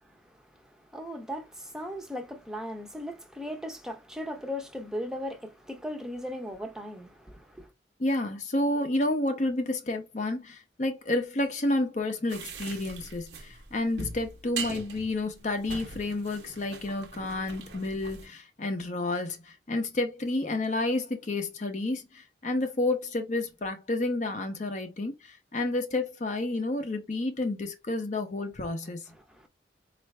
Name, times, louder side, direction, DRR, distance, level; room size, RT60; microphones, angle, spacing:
voice 1, 0.1-7.7 29.1-29.5, equal, 5° right, 0.7 m, -38 dB
voice 2, 8.0-29.0, left 2 dB, 40° left, 0.6 m, -30 dB
sound 1, 12.3-18.3, right 4 dB, 75° right, 0.9 m, -41 dB
4.3 x 2.5 x 3.2 m
head